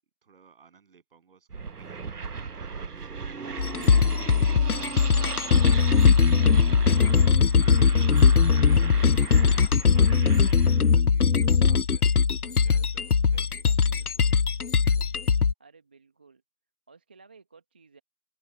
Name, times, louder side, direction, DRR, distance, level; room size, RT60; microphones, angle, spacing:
voice 1, 0.2-14.4, right 6 dB, 35° right, 7.7 m, -57 dB
sound 1, 1.5-10.9, right 5 dB, 70° right, 1.1 m, -37 dB
sound 2, 3.6-15.5, left 6 dB, 65° left, 0.8 m, -20 dB
voice 2, 15.6-16.4 16.9-18.0, right 4 dB, 5° right, 1.1 m, -55 dB
open air
figure-of-eight pair, 155°, 48 cm